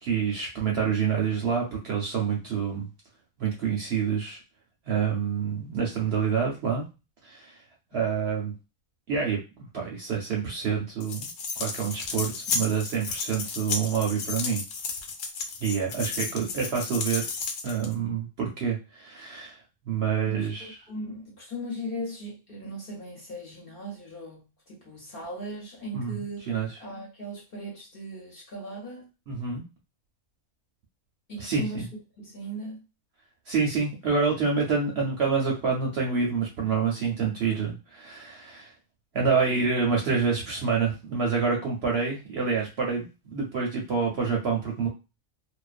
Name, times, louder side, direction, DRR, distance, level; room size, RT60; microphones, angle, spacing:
voice 1, 0.0-2.9 3.4-4.4 4.8-6.9 7.2-7.5 7.9-8.5 9.1-11.3 11.6-14.6 15.6-17.2 17.6-19.6 19.9-20.6 25.9-26.1 26.5-26.7 29.3-29.6 31.4-31.9 33.5-38.7 39.1-44.9, right 6 dB, 60° right, 0.7 m, -27 dB
sound 1, 11.0-17.9, left 4 dB, 90° left, 1.1 m, -33 dB
voice 2, 20.3-26.5 26.8-29.1 31.3-31.9 32.2-32.8, right 1 dB, 45° left, 0.9 m, -38 dB
2.4 x 2.1 x 2.4 m
omnidirectional pair, 1.5 m